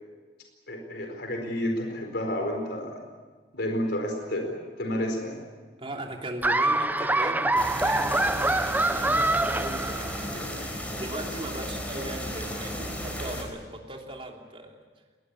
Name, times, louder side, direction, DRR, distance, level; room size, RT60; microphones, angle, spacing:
voice 1, 0.7-3.0 3.5-5.4, equal, 65° left, 3 dB, 4.5 m, -30 dB
voice 2, 5.8-14.8, right 1 dB, 30° right, 1 dB, 3.1 m, -38 dB
Laughter, 6.4-10.4, right 2 dB, 10° right, 0.6 m, -25 dB
sound 1, 7.6-13.4, equal, 10° left, 4.4 m, -34 dB
21.5 x 19.0 x 9.8 m, 1.4 s
head